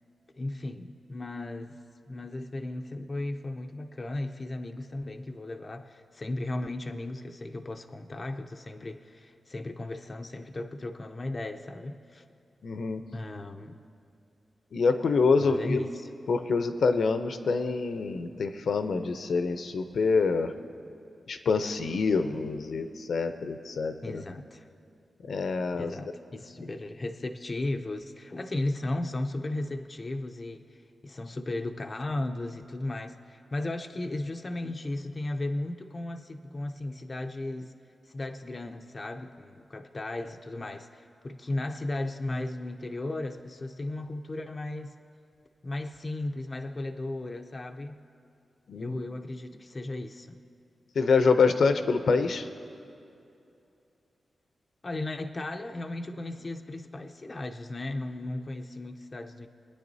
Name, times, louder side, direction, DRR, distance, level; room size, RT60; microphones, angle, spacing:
voice 1, 0.4-1.8 2.1-12.2 13.1-13.8 15.4-16.1 24.0-24.7 25.7-37.7 38.1-44.9 45.6-47.9 48.7-50.4 54.8-59.5, left 2 dB, 30° left, 5 dB, 0.5 m, -35 dB
voice 2, 12.6-13.0 14.7-15.8 16.3-20.5 21.3-24.2 25.3-25.9 48.7-49.0 51.0-52.5, left 4 dB, 70° left, 8 dB, 0.6 m, -26 dB
26.5 x 9.7 x 2.7 m, 2.6 s
wide cardioid pair, 145°, 0 cm